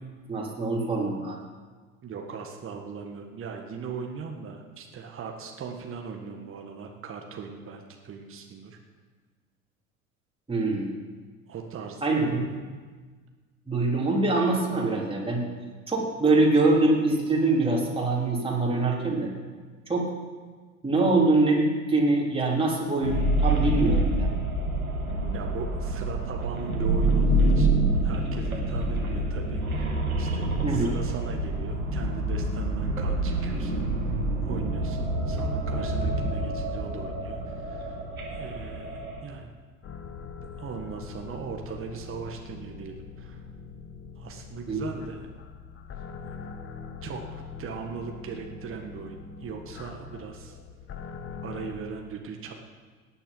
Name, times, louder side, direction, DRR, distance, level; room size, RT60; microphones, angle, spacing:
voice 1, 0.3-1.4 10.5-10.9 12.0-12.6 13.7-15.4 15.9-19.3 19.9-20.1 20.8-24.3 30.6-30.9 44.7-44.9, right 2 dB, 15° right, -3 dB, 3.7 m, -24 dB
voice 2, 2.0-8.8 11.5-12.6 25.3-29.6 30.2-34.1 34.4-38.0 38.3-39.5 40.6-43.4 44.2-45.3 46.0-46.4 47.0-50.6 51.4-52.5, right 6 dB, 30° right, 3 dB, 1.7 m, -39 dB
sound 1, 23.0-39.2, right 1 dB, 90° right, 2.4 m, -27 dB
sound 2, 39.8-51.7, left 5 dB, 30° left, 1.4 m, -42 dB
18.0 x 10.0 x 5.6 m, 1.5 s
figure-of-eight pair, 75°, 41 cm